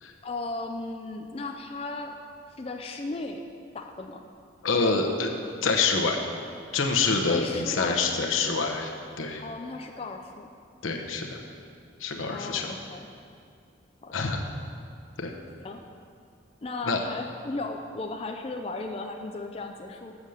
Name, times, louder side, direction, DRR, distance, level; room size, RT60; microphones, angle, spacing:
voice 1, 0.2-2.2 2.6-3.4 3.7-4.2 7.3-8.0 9.4-10.5 12.3-13.1 14.0-14.3 15.6-15.8 16.6-20.2, left 3 dB, 30° left, 3 dB, 0.4 m, -36 dB
voice 2, 4.6-6.2 6.7-8.9 9.2-9.4 10.8-11.4 12.0-12.8 14.1-14.4 15.2-15.3 16.8-17.0, left 4 dB, 90° left, 2 dB, 0.9 m, -26 dB
7.3 x 7.0 x 6.4 m, 2.4 s
head